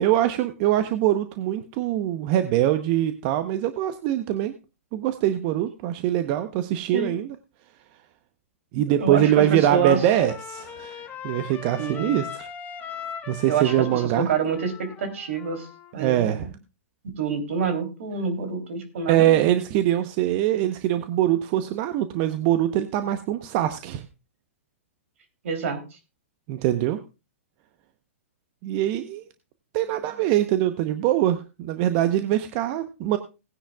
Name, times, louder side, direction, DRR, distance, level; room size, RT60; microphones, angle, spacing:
voice 1, 0.0-4.5 4.9-7.4 8.7-12.5 13.3-14.3 16.0-16.5 19.1-24.0 26.5-27.0 28.6-29.2 29.7-33.2, right 12 dB, 40° right, 10 dB, 0.9 m, -23 dB
voice 2, 8.9-10.0 11.8-12.2 13.4-15.7 15.9-16.5 17.0-19.5 25.4-26.0, right 5 dB, 70° right, 8 dB, 3.2 m, -27 dB
Trumpet, 9.3-15.9, left 8 dB, 20° left, 1.2 m, -40 dB
18.5 x 9.9 x 2.4 m, 0.29 s
hypercardioid pair, 130°, 8 cm